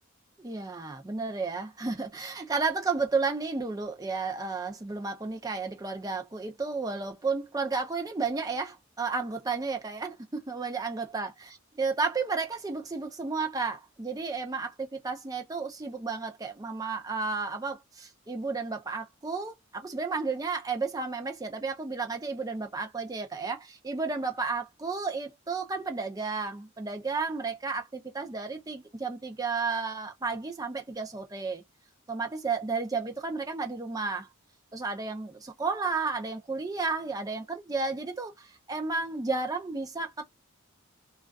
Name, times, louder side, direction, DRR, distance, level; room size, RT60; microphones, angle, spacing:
voice 1, 0.4-11.3 11.8-31.6 32.1-34.3 34.7-40.2, right 4 dB, 15° right, 0.4 m, -32 dB
2.3 x 2.3 x 2.3 m
head